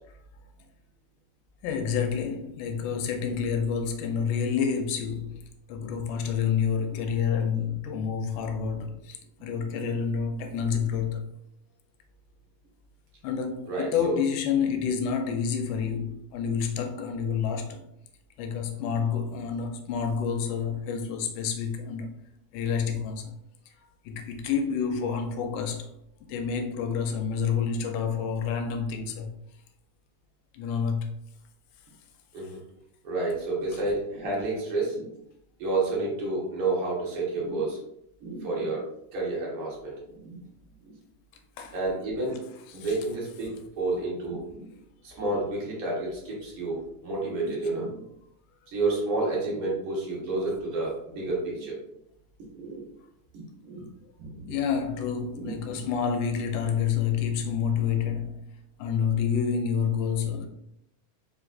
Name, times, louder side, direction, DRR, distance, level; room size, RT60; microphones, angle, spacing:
voice 1, 1.6-5.4 5.7-11.3 13.2-17.8 18.4-22.2 22.5-23.3 24.1-25.9 26.3-29.3 30.5-31.2 41.6-41.8 42.7-42.9 54.5-58.5 58.8-60.5, left 6 dB, 90° left, 2.2 m, -28 dB
voice 2, 13.7-14.2 32.3-32.6 33.0-35.1 35.6-37.8 38.2-38.9 39.1-40.4 41.7-42.4 42.7-44.7 45.0-46.8 47.0-48.0 48.7-51.7 52.5-52.8 53.3-53.9 54.2-54.5 55.3-55.8, right 2 dB, 55° right, 1.7 m, -30 dB
4.9 x 3.9 x 2.4 m
omnidirectional pair, 3.7 m